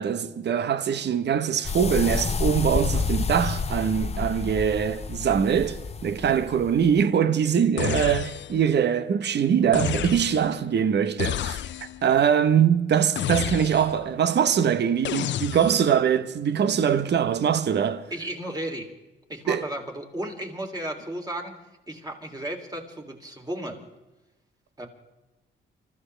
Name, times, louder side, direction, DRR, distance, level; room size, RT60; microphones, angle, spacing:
voice 1, 0.0-11.6 12.0-18.0 19.5-19.6, right 8 dB, 60° right, 1.0 m, -23 dB
sound 1, 1.6-7.0, left 4 dB, 30° left, 0.9 m, -29 dB
sound 2, 7.8-8.7 9.7-10.6 11.2-12.1 13.2-14.1 15.0-16.0, left 12 dB, 65° left, 0.4 m, -30 dB
voice 2, 18.1-18.9 19.3-21.5 21.9-23.9 24.8-24.9, right 1 dB, 20° right, 3.1 m, -34 dB
27.5 x 14.5 x 3.4 m
cardioid pair, 105°, 20 cm